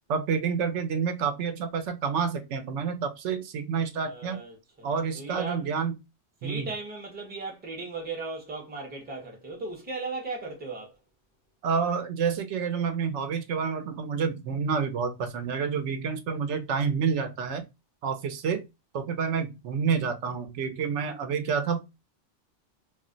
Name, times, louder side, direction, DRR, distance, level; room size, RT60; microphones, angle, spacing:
voice 1, 0.1-4.4 4.8-5.9 6.4-6.7 11.6-17.6 18.0-18.6 18.9-21.9, right 6 dB, 75° right, 0.9 m, -28 dB
voice 2, 4.1-5.7 6.4-11.0, right 3 dB, 10° right, 0.6 m, -37 dB
2.4 x 2.0 x 3.7 m
omnidirectional pair, 1.2 m